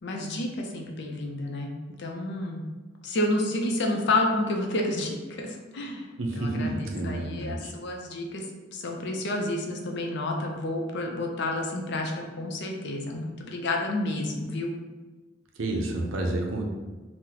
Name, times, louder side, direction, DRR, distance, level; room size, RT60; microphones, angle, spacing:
voice 1, 0.0-1.7 2.0-2.6 3.0-6.1 6.4-8.5 8.7-14.7, left 2 dB, 60° left, 2 dB, 0.5 m, -30 dB
voice 2, 6.2-7.7 15.6-16.6, right 2 dB, 85° right, 1 dB, 0.6 m, -29 dB
2.9 x 2.1 x 3.8 m, 1.3 s
head